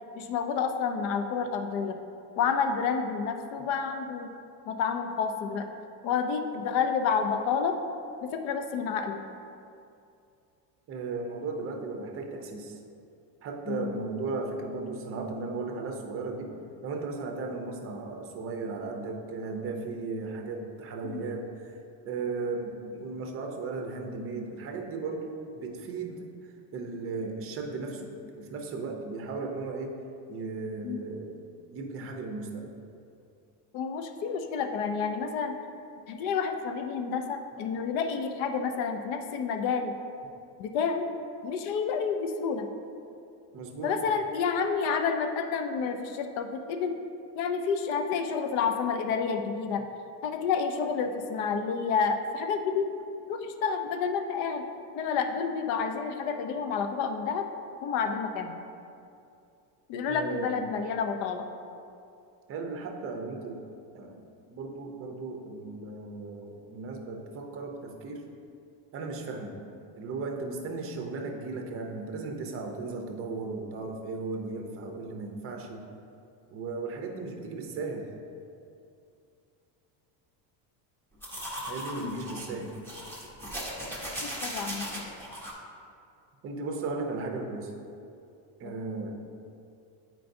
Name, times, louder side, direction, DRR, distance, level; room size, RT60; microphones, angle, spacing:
voice 1, 0.1-2.0 2.4-4.3 4.7-5.7 6.0-7.7 8.2-9.2 13.7-13.9 21.0-21.2 30.8-31.0 33.7-35.6 36.1-39.9 40.6-41.1 41.4-42.7 43.8-47.0 47.3-49.8 50.2-52.9 53.3-54.7 54.9-57.4 57.8-58.6 59.9-61.4 82.0-82.3 84.2-85.0, left 6 dB, 65° left, 6 dB, 0.6 m, -29 dB
voice 2, 10.9-12.8 13.4-16.5 16.8-26.3 26.7-30.0 30.3-31.4 31.7-32.7 43.5-43.9 60.1-60.7 62.5-63.6 63.9-64.2 64.5-68.2 68.9-69.6 70.0-75.9 76.5-78.1 81.7-82.7 86.4-87.7 88.6-89.1, right 3 dB, 30° right, 3 dB, 0.6 m, -36 dB
sound 1, 81.2-85.5, equal, 5° left, 0.8 m, -38 dB
9.0 x 4.6 x 2.6 m, 2.5 s
cardioid pair, 160°, 46 cm